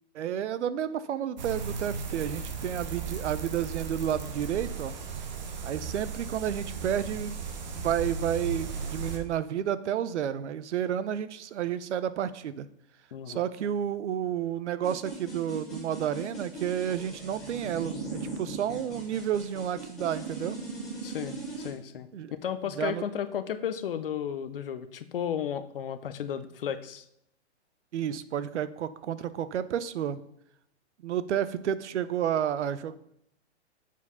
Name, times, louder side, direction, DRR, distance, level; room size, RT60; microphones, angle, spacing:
voice 1, 0.1-4.9 5.6-7.4 7.7-12.7 13.3-20.6 22.1-22.3 22.8-23.0 27.9-30.2 31.0-32.9, right 9 dB, 85° right, 15 dB, 0.7 m, -31 dB
sound 1, 1.4-9.2, right 5 dB, 40° right, 0.9 m, -36 dB
voice 2, 13.1-13.4 21.0-22.1 22.4-27.0, left 8 dB, 55° left, 12 dB, 0.6 m, -34 dB
sound 2, 14.8-21.7, right 3 dB, ahead, 0.5 m, -39 dB
7.2 x 4.7 x 5.5 m, 0.74 s
hypercardioid pair, 180°, 34 cm